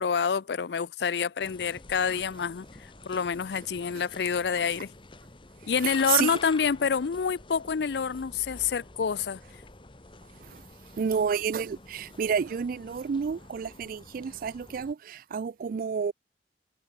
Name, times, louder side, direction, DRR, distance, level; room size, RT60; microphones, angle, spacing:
voice 1, 0.0-4.9 5.7-9.4, left 6 dB, 65° left, 0.5 m, -28 dB
sound 1, 1.4-14.9, left 3 dB, 30° left, 1.4 m, -48 dB
sound 2, 2.3-3.3 3.8-4.6 5.2-6.7 7.0-7.2 7.5-7.7 8.0-8.2 9.1-9.4 9.6-9.7 10.1-10.2 11.0-11.2 11.4-11.5 12.4-12.7 13.4-13.6, right 3 dB, 75° right, 7.1 m, -59 dB
voice 2, 5.8-6.4 10.4-10.6 11.0-16.1, right 7 dB, 50° right, 0.3 m, -30 dB
head